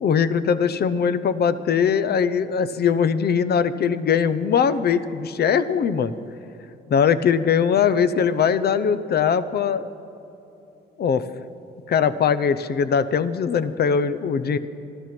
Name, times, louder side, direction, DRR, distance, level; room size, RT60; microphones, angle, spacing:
voice 1, 0.0-6.1 6.9-9.9 11.0-11.2 11.9-14.6, left 7 dB, 55° left, 14 dB, 0.7 m, -21 dB
15.5 x 12.5 x 6.0 m, 2.9 s
cardioid pair, 90°, 20 cm